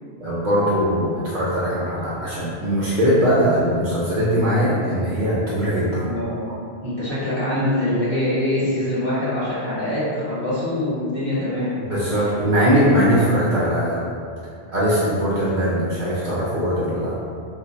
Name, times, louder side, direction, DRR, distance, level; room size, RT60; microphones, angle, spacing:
voice 1, 0.2-6.1 11.8-14.1 14.7-17.1, equal, 50° right, -8 dB, 0.7 m, -20 dB
voice 2, 5.9-6.5 6.8-11.8, left 1 dB, 55° left, -10 dB, 1.3 m, -24 dB
3.1 x 2.2 x 3.8 m, 2.3 s
omnidirectional pair, 1.2 m